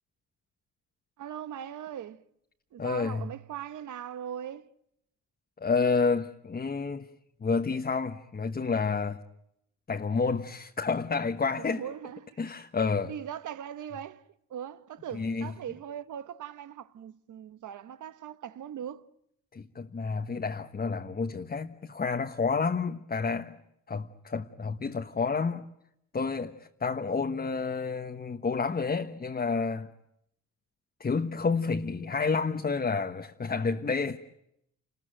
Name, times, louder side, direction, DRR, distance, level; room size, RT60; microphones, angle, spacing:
voice 1, 1.2-2.2 2.7-4.7 11.5-12.4 13.0-14.2 14.5-19.1, right 9 dB, 65° right, 1.2 m, -40 dB
voice 2, 2.8-3.3 5.6-7.1 7.4-9.2 9.9-11.8 12.4-13.1 15.1-15.5 19.5-23.6 23.9-25.6 26.1-29.9 31.0-34.2, left 4 dB, 30° left, 1.3 m, -29 dB
29.0 x 20.5 x 9.2 m
cardioid pair, 90°, 32 cm